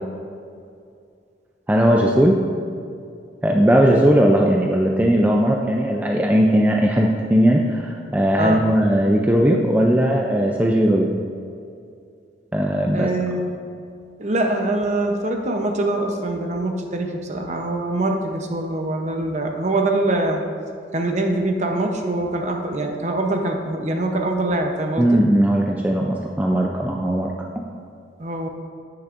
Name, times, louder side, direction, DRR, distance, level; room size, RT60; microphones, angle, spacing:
voice 1, 1.7-2.4 3.4-11.1 12.5-13.1 25.0-27.3, equal, 10° right, -1 dB, 0.4 m, -18 dB
voice 2, 12.9-13.6 14.2-20.4 20.9-25.2 28.2-28.5, right 2 dB, 40° right, 3 dB, 0.8 m, -23 dB
10.0 x 8.9 x 2.6 m, 2.4 s
head